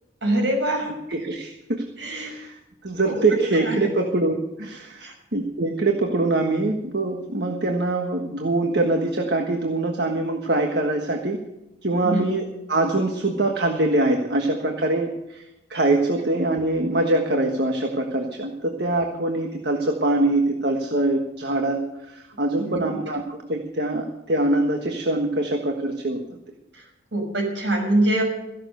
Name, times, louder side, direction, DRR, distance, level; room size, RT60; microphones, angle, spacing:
voice 1, 0.2-1.0 2.0-2.3 3.0-3.9 5.0-5.1 12.0-12.3 22.6-22.9 26.7-26.9 27.1-28.2, right 1 dB, 80° right, 2 dB, 6.2 m, -24 dB
voice 2, 1.1-1.8 2.1-2.6 2.8-5.1 5.3-11.4 11.8-15.4 15.7-21.8 22.1-26.2, right 2 dB, 60° right, 3 dB, 1.4 m, -23 dB
15.0 x 11.5 x 6.6 m, 0.91 s
head